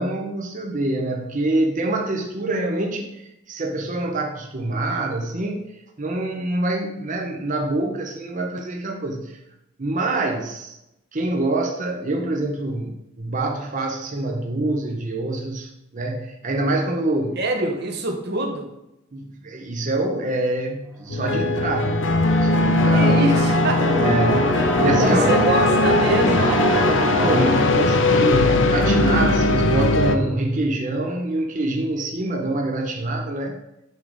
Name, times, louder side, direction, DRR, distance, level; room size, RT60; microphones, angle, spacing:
voice 1, 0.0-5.6 6.0-9.4 9.8-10.7 11.1-17.4 19.1-22.1 22.4-23.2 24.0-25.3 27.2-33.5, right 2 dB, 40° right, 1 dB, 0.8 m, -25 dB
voice 2, 17.4-18.7 22.9-23.9 24.5-24.6 25.0-26.7, right 2 dB, 55° right, 2 dB, 1.3 m, -24 dB
sound 1, 21.1-30.2, left 2 dB, 70° left, 0.7 m, -19 dB
sound 2, 21.4-29.2, equal, 10° right, 1.3 m, -26 dB
9.4 x 4.0 x 5.1 m, 0.88 s
head